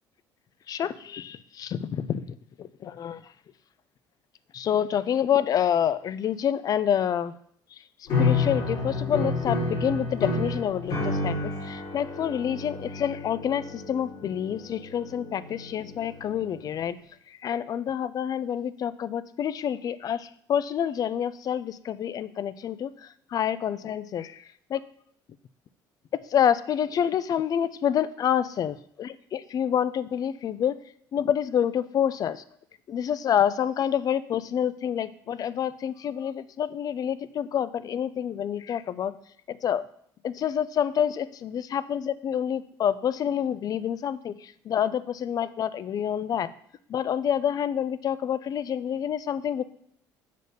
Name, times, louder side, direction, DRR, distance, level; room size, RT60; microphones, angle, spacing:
voice 1, 0.7-3.2 4.5-7.3 8.2-17.0 17.4-22.9 23.3-24.3 24.7-24.8 26.3-30.8 31.1-32.4 32.9-39.1 39.5-39.8 40.2-44.3 44.7-46.5 46.9-49.6, left 9 dB, 45° left, 16 dB, 0.5 m, -27 dB
sound 1, 8.1-16.4, left 3 dB, 65° left, 3.6 m, -30 dB
6.7 x 5.0 x 6.6 m, 0.66 s
cardioid pair, 105°, 9 cm